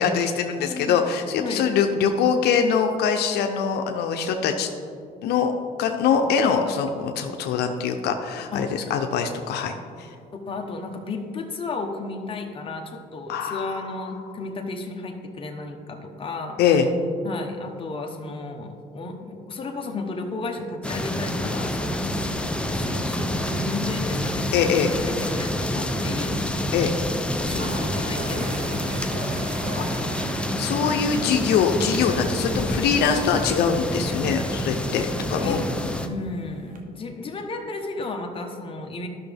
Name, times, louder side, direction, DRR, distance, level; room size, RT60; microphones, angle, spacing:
voice 1, 0.0-4.7 5.2-5.5 5.8-9.7 13.3-13.8 16.6-16.9 24.5-24.9 26.7-26.9 29.7-29.9 30.6-35.6, left 6 dB, 75° left, 5 dB, 0.6 m, -23 dB
voice 2, 0.6-1.0 1.4-1.6 8.5-8.9 10.4-16.6 17.2-26.6 27.3-29.6 35.4-35.7 36.0-39.1, left 3 dB, 30° left, 3 dB, 1.1 m, -34 dB
sound 1, 20.8-36.1, left 1 dB, 5° left, 0.6 m, -27 dB
sound 2, 25.6-25.7 25.9-26.0 27.0-27.1 27.4-36.8, right 2 dB, 55° right, 1.3 m, -41 dB
12.5 x 6.1 x 3.4 m, 2.4 s
cardioid pair, 110°, 17 cm